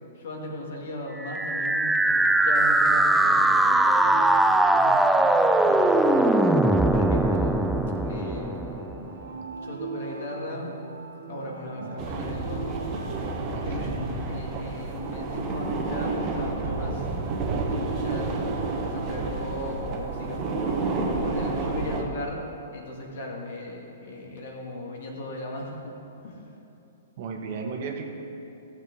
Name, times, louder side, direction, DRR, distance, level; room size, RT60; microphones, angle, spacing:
voice 1, 0.1-5.0 5.7-6.5 6.9-7.6 8.0-8.7 9.6-10.7 11.3-12.8 13.6-17.1 17.7-22.4 22.7-26.4, left 1 dB, 65° left, -1 dB, 1.9 m, -37 dB
sound 1, 1.2-9.1, right 2 dB, 5° right, 0.3 m, -21 dB
sound 2, 2.9-14.2, right 4 dB, 75° right, 0.9 m, -40 dB
sound 3, 12.0-22.0, right 3 dB, 35° right, 1.2 m, -30 dB
voice 2, 13.5-14.1 27.2-28.1, right 5 dB, 50° right, 2 dB, 1.3 m, -35 dB
15.0 x 6.5 x 3.9 m, 2.9 s
hypercardioid pair, 120°, 0 cm